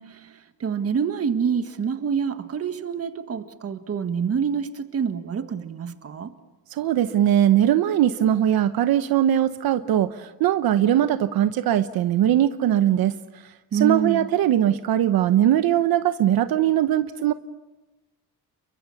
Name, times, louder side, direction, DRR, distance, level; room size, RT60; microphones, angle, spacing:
voice 1, 0.0-6.3 13.7-14.3, right 6 dB, 40° right, 1.7 m, -27 dB
voice 2, 6.7-13.1 13.7-17.3, right 11 dB, 80° right, 0.9 m, -20 dB
30.0 x 23.5 x 7.1 m
cardioid pair, 155°, 36 cm